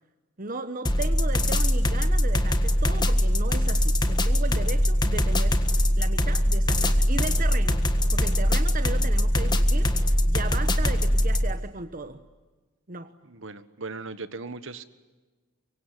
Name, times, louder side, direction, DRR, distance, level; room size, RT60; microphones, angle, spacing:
voice 1, 0.4-5.6 6.0-7.8 8.1-12.2 12.9-13.1, right 3 dB, 40° right, 9 dB, 1.1 m, -36 dB
sound 1, 0.9-11.5, equal, 20° left, 1.6 m, -22 dB
voice 2, 13.3-14.9, right 3 dB, 60° right, 13 dB, 1.5 m, -38 dB
24.5 x 24.0 x 9.9 m, 1.3 s
head